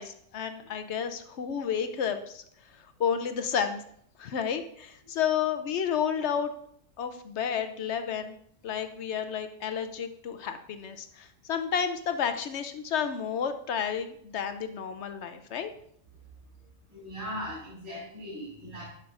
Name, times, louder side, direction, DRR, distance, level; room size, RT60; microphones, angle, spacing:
voice 1, 0.0-2.4 3.0-3.8 4.2-6.5 7.0-8.3 8.6-15.7, left 7 dB, 65° left, 8 dB, 0.9 m, -31 dB
voice 2, 16.9-18.8, equal, 80° right, -6 dB, 3.5 m, -39 dB
11.5 x 5.8 x 2.5 m, 0.66 s
omnidirectional pair, 1.3 m